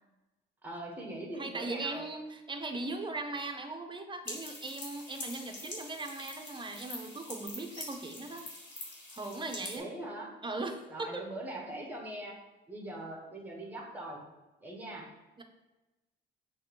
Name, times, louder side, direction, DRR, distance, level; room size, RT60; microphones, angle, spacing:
voice 1, 0.6-2.0 9.7-10.4 10.9-12.4 12.7-14.2 14.6-15.1, right 1 dB, 10° right, 0 dB, 1.7 m, -41 dB
voice 2, 1.3-8.5 9.1-9.9 10.4-11.3 15.4-15.5, right 2 dB, 25° right, 5 dB, 0.8 m, -39 dB
sound 1, 4.2-9.8, left 2 dB, 65° left, 1.8 m, -44 dB
6.5 x 3.1 x 4.8 m, 1.1 s
cardioid pair, 90°, 20 cm